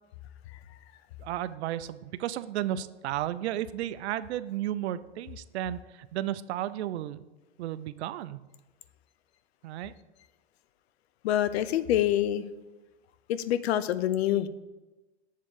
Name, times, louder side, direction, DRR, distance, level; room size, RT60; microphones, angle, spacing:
voice 1, 1.2-7.2 7.6-8.4 9.6-9.9, right 12 dB, 75° right, 15 dB, 0.5 m, -33 dB
voice 2, 11.2-12.5 13.3-14.5, left 12 dB, 70° left, 14 dB, 0.6 m, -26 dB
7.4 x 3.6 x 6.2 m, 1.2 s
supercardioid pair, 150°, 34 cm